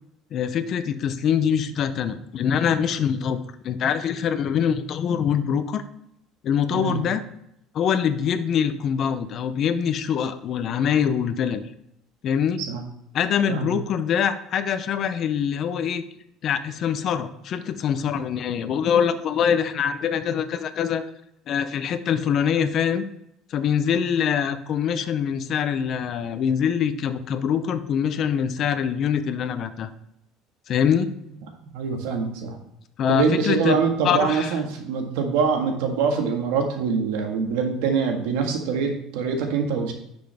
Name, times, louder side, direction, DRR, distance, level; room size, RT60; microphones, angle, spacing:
voice 1, 0.3-5.8 6.4-7.2 7.7-11.6 12.2-12.6 13.1-16.0 16.4-21.0 21.5-23.0 23.5-29.9 30.7-31.1 33.0-33.8 34.0-34.5, left 8 dB, 45° left, 12 dB, 0.6 m, -24 dB
voice 2, 6.7-7.0 12.6-12.8 13.5-13.7 31.7-32.6 33.1-39.9, right 5 dB, 85° right, 3 dB, 1.7 m, -24 dB
10.0 x 6.0 x 3.5 m, 0.79 s
cardioid pair, 145°, 0 cm